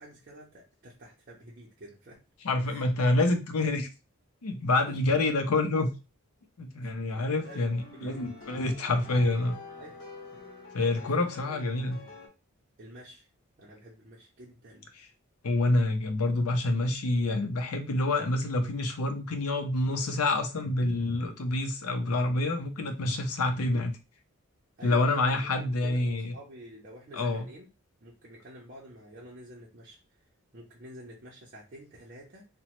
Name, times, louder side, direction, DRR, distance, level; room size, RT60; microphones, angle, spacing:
voice 1, 0.0-2.2 2.6-2.9 4.9-5.0 6.8-8.3 9.8-10.0 10.8-12.2 12.8-13.3 13.6-14.9 24.8-27.7 28.0-30.0 30.5-32.5, right 1 dB, 40° right, -4 dB, 0.5 m, -49 dB
voice 2, 2.4-3.9 4.4-5.9 6.6-9.6 10.7-12.0 15.4-23.9 24.8-26.3 27.1-27.5, left 2 dB, 85° left, 6 dB, 0.6 m, -27 dB
sound 1, 7.2-12.3, left 4 dB, 60° left, 1.1 m, -47 dB
3.0 x 2.1 x 2.9 m, 0.28 s
head